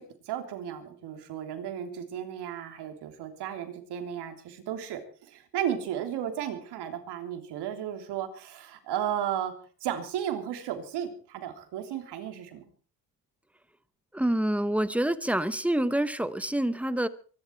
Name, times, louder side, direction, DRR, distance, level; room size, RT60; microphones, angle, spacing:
voice 1, 0.0-9.5 9.8-12.7, right 10 dB, 70° right, 3.4 m, -34 dB
voice 2, 14.1-17.1, right 1 dB, 5° right, 0.9 m, -27 dB
23.5 x 12.0 x 4.6 m
cardioid pair, 135°, 41 cm